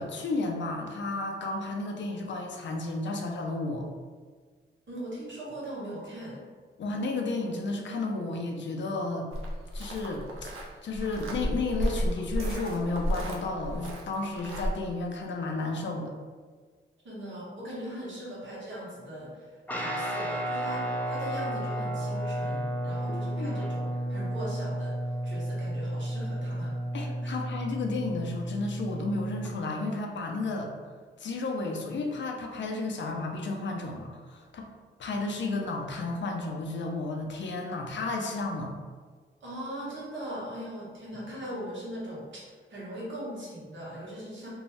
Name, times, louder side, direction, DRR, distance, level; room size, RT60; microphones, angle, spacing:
voice 1, 0.0-3.9 6.8-9.3 9.7-10.5 10.8-16.1 23.1-23.6 26.9-30.7 31.2-34.7 35.0-38.7, left 3 dB, 65° left, 2 dB, 0.5 m, -32 dB
voice 2, 4.9-6.4 17.0-25.0 25.2-26.7 27.0-27.4 39.4-44.5, right 1 dB, 65° right, -6 dB, 1.0 m, -40 dB
sound 1, 9.3-14.7, equal, 85° right, 0.5 m, -33 dB
Guitar, 19.7-29.5, right 1 dB, 10° left, 0.4 m, -32 dB
2.6 x 2.2 x 3.1 m, 1.5 s
cardioid pair, 90°, 21 cm